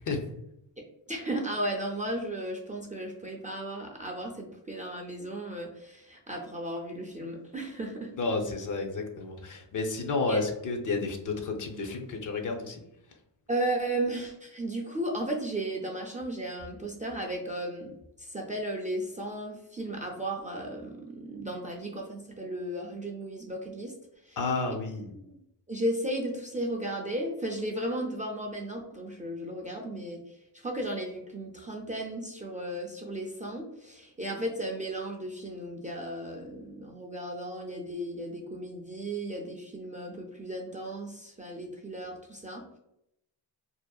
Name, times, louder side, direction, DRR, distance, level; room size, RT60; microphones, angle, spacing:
voice 1, 1.1-8.1 10.3-10.5 13.5-23.9 24.2-24.4 25.1-25.4 25.7-42.6, right 1 dB, 20° right, -1 dB, 0.3 m, -35 dB
voice 2, 8.2-12.8 24.4-25.1, left 3 dB, 45° left, 3 dB, 0.5 m, -31 dB
2.6 x 2.0 x 2.3 m, 0.81 s
cardioid pair, 80°, 44 cm